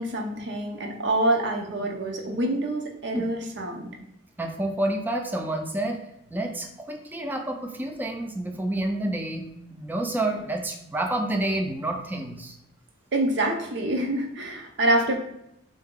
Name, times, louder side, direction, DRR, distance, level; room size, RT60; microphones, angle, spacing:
voice 1, 0.0-3.9 13.1-15.2, right 1 dB, 65° right, 2 dB, 0.7 m, -26 dB
voice 2, 4.4-6.0 6.3-12.5, right 1 dB, 10° right, 3 dB, 0.4 m, -29 dB
3.8 x 2.7 x 3.6 m, 0.81 s
head